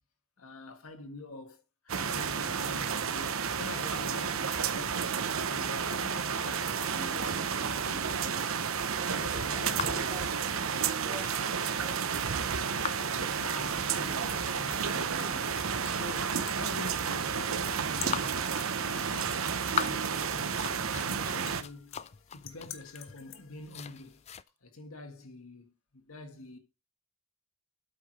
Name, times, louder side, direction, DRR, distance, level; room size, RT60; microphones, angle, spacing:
voice 1, 0.4-5.0 5.4-8.6 9.1-10.2 13.1-15.7 15.9-18.6 18.9-19.6 19.8-24.2 24.6-26.6, left 2 dB, 85° left, 1.7 m, -46 dB
sound 1, 1.9-21.6, right 6 dB, 75° right, 0.8 m, -31 dB
voice 2, 9.1-10.3 10.6-12.5, equal, 10° right, 0.7 m, -49 dB
sound 2, 9.7-24.4, left 8 dB, 30° left, 0.4 m, -42 dB
sound 3, 12.5-24.3, left 9 dB, 65° left, 1.2 m, -51 dB
8.5 x 4.9 x 6.0 m
head